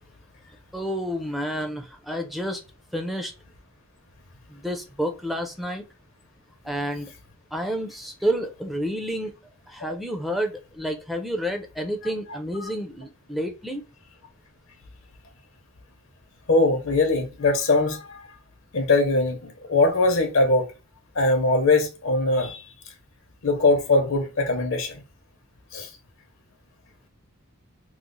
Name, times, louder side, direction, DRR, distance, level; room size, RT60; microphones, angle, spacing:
voice 1, 0.7-2.6 2.9-3.3 4.5-5.8 6.6-7.1 7.5-9.3 9.7-13.8, equal, ahead, 0.4 m, -29 dB
voice 2, 16.5-18.2 18.7-20.7 21.1-22.6 23.4-25.0 25.7-25.9, left 2 dB, 65° left, 0.7 m, -21 dB
3.0 x 2.0 x 3.8 m
head